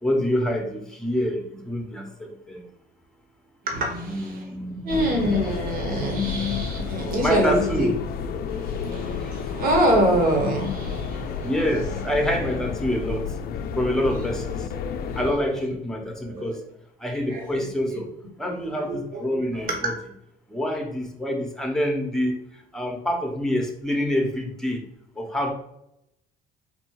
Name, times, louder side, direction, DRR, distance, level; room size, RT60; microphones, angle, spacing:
voice 1, 0.0-2.6 3.8-5.7 7.2-8.0 9.2-9.3 11.4-13.4 13.7-14.7 15.2-16.6 17.0-18.1 18.4-19.9 20.5-24.8 25.1-25.5, equal, 5° left, 2 dB, 1.0 m, -27 dB
voice 2, 3.6-4.4 4.8-7.9 8.5-11.8 15.0-15.2 16.3-16.6 17.3-18.0 18.4-19.9, right 1 dB, 60° right, 1 dB, 1.4 m, -26 dB
sound 1, 4.9-15.3, left 6 dB, 65° left, 0.5 m, -31 dB
4.4 x 2.6 x 4.6 m, 0.80 s
cardioid pair, 110°, 17 cm